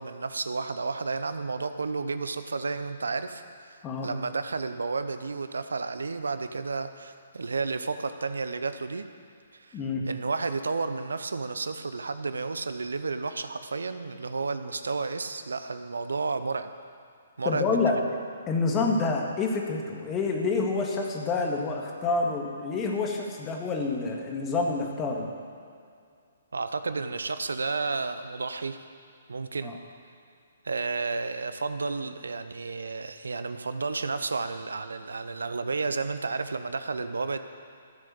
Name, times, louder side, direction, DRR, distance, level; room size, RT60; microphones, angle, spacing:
voice 1, 0.0-3.4 3.7-9.1 9.5-9.8 10.1-16.7 17.4-18.0 18.8-19.0 26.5-28.8 29.3-29.7 30.6-37.4, right 4 dB, 75° right, 10 dB, 0.7 m, -32 dB
voice 2, 9.7-10.0 17.5-18.0 18.5-25.3 29.6-29.8, left 3 dB, 20° left, 0 dB, 1.9 m, -28 dB
14.5 x 7.7 x 7.0 m, 2.3 s
figure-of-eight pair, 130°, 0 cm